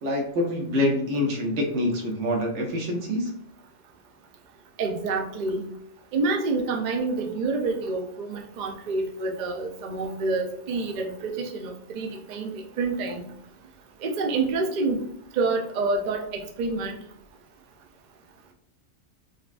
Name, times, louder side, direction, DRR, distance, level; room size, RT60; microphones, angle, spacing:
voice 1, 0.0-3.3, left 1 dB, 65° right, 2 dB, 1.0 m, -26 dB
voice 2, 4.8-5.6 6.1-12.5 12.8-13.3 14.0-15.0 15.3-16.9, right 3 dB, 85° right, 2 dB, 0.4 m, -27 dB
3.9 x 2.2 x 2.4 m, 0.65 s
omnidirectional pair, 1.4 m